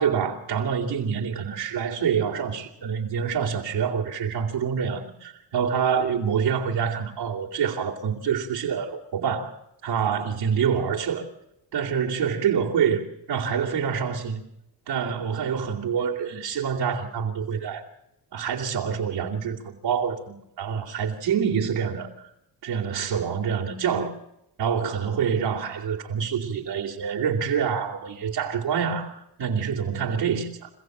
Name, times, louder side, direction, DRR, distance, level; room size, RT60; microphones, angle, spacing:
voice 1, 0.0-9.5 9.8-11.3 11.7-14.4 14.9-17.8 18.3-22.1 22.6-24.1 24.6-30.7, right 7 dB, 85° right, 2.7 m, -26 dB
28.0 x 15.0 x 7.9 m
cardioid pair, 65°, 43 cm